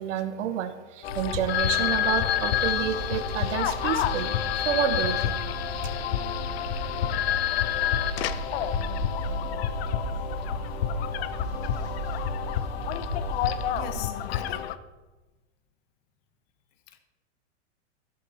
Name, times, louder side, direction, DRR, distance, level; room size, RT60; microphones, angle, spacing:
voice 1, 0.0-4.4 4.6-5.4 5.8-5.9, right 9 dB, 90° right, 9 dB, 0.9 m, -29 dB
sound 1, 1.0-14.8, left 11 dB, 60° left, 0.6 m, -29 dB
sound 2, 1.1-14.0, right 2 dB, 65° right, 2.2 m, -36 dB
voice 2, 13.7-14.7 16.9-17.0, left 9 dB, 40° left, 8 dB, 1.1 m, -40 dB
12.5 x 12.5 x 2.8 m, 1.2 s
supercardioid pair, 155°, 36 cm